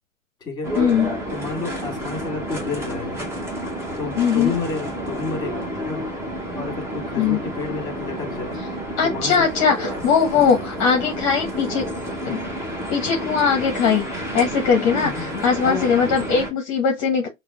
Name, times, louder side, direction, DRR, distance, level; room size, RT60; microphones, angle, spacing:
sound 1, 0.6-16.5, equal, 5° right, 0.6 m, -30 dB
voice 1, 0.8-1.2 4.2-4.5 7.2-7.4 9.0-11.9 12.2-12.4 12.9-17.3, left 6 dB, 30° left, 0.8 m, -20 dB
voice 2, 1.3-3.3 4.0-6.0 6.5-8.6 9.0-9.5 10.2-10.5 15.0-15.9, left 4 dB, 10° left, 1.6 m, -31 dB
6.0 x 2.1 x 2.3 m
figure-of-eight pair, 110°, 38 cm